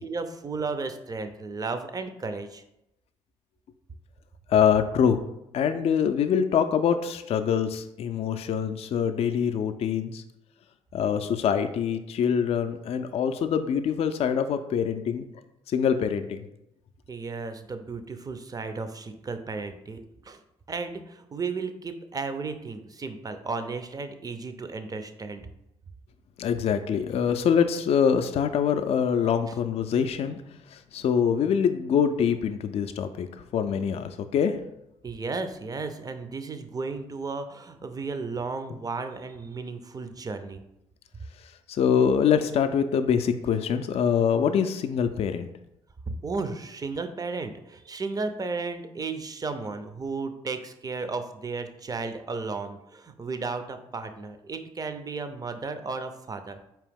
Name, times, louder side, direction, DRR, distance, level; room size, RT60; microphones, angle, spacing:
voice 1, 0.0-2.6 17.1-20.4 20.7-25.5 35.0-40.6 46.1-56.6, right 4 dB, 30° right, 9 dB, 0.5 m, -34 dB
voice 2, 4.5-5.2 5.5-10.2 10.9-15.3 15.7-16.4 26.4-30.4 30.7-33.3 33.5-34.6 41.7-45.5, left 7 dB, 50° left, 8 dB, 0.4 m, -24 dB
4.5 x 2.9 x 3.5 m, 0.85 s
hypercardioid pair, 55°, 13 cm